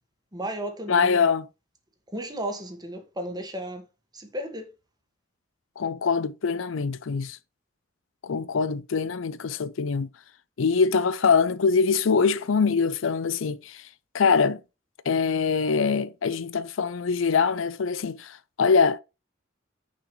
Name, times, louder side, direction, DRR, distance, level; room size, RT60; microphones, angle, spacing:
voice 1, 0.3-1.3 2.1-3.8 4.1-4.7, right 1 dB, 20° right, 1.4 m, -34 dB
voice 2, 0.9-1.5 5.8-7.4 8.2-10.1 10.6-13.9 14.1-14.6 15.1-19.0, left 5 dB, 75° left, 0.5 m, -23 dB
6.3 x 6.0 x 3.1 m
head